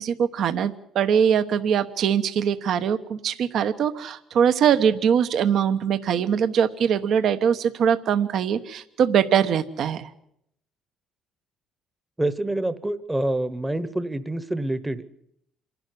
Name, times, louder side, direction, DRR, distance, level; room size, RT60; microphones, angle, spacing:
voice 1, 0.0-10.1, right 8 dB, 60° right, 11 dB, 1.0 m, -22 dB
voice 2, 12.2-15.0, right 1 dB, 10° right, 13 dB, 1.0 m, -27 dB
26.5 x 11.5 x 9.8 m, 0.77 s
cardioid pair, 115°, 0 cm